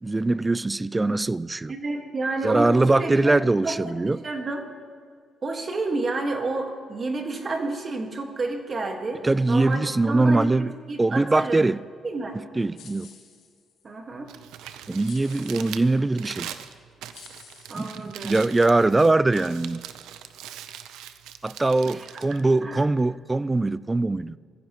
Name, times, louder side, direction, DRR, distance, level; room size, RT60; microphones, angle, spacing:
voice 1, 0.0-1.7 2.4-4.2 9.2-10.7 11.0-11.8 12.6-13.1 14.9-16.5 17.7-17.9 18.2-19.8 21.4-24.4, right 2 dB, 20° right, 0.3 m, -22 dB
voice 2, 1.7-4.7 5.4-11.6 12.0-12.4 13.8-14.3 17.7-18.4 21.9-22.0 22.6-22.8, right 3 dB, 40° right, 1.6 m, -30 dB
sound 1, 12.7-13.9 15.0-16.0 16.6-16.7 17.1-18.5, left 7 dB, 80° left, 2.3 m, -50 dB
Crumpling crinkling, 14.1-23.2, right 10 dB, 90° right, 0.6 m, -42 dB
20.5 x 15.0 x 3.0 m
cardioid pair, 90°, 0 cm